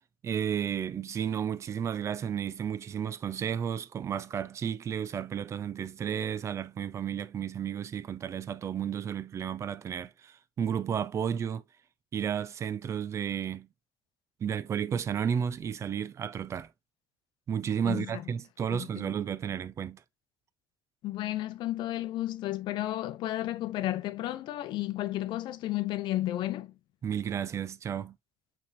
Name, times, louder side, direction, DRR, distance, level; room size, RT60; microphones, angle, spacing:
voice 1, 0.2-11.6 12.1-13.7 14.4-16.7 17.5-20.0 27.0-28.2, right 8 dB, 35° right, 0.4 m, -32 dB
voice 2, 17.8-18.2 18.7-19.1 21.0-26.7, left 15 dB, 70° left, 0.5 m, -33 dB
5.7 x 3.5 x 2.5 m
cardioid pair, 135°, 8 cm